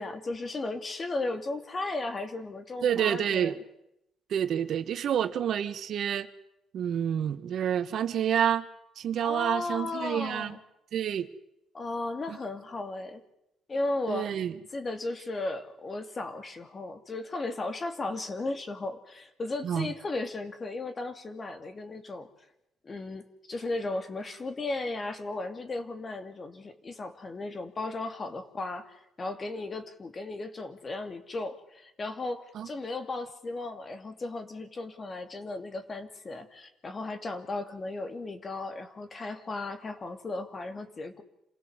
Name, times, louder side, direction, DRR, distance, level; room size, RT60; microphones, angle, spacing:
voice 1, 0.0-3.6 9.2-10.6 11.7-13.2 13.7-14.3 14.7-22.3 22.8-41.2, left 2 dB, 35° left, 8 dB, 2.6 m, -35 dB
voice 2, 2.8-3.5 4.3-6.3 6.7-8.6 9.0-10.5 10.9-11.3 12.3-12.4 14.1-14.5 19.6-19.9 32.5-32.7, right 9 dB, 70° right, 10 dB, 1.4 m, -28 dB
27.5 x 17.0 x 8.1 m, 0.84 s
cardioid pair, 90°, 0 cm